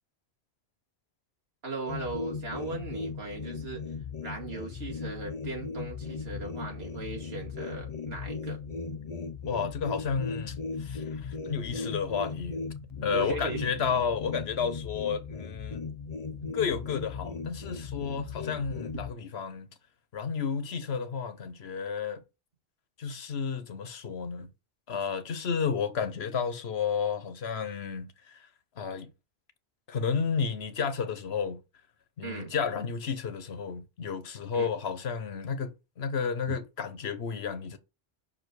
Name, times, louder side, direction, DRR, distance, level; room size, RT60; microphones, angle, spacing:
voice 1, 1.6-3.8 4.2-8.6 13.1-13.7 32.2-32.6 34.5-34.7, right 3 dB, 80° right, 2.6 m, -38 dB
sound 1, 1.9-19.1, left 5 dB, 40° left, 0.7 m, -37 dB
voice 2, 9.4-12.6 13.0-15.8 16.5-19.7 20.1-22.2 23.0-24.5 24.9-28.4 28.8-29.1 29.9-31.6 32.2-37.8, left 6 dB, 85° left, 1.2 m, -32 dB
5.7 x 5.1 x 6.2 m
omnidirectional pair, 1.0 m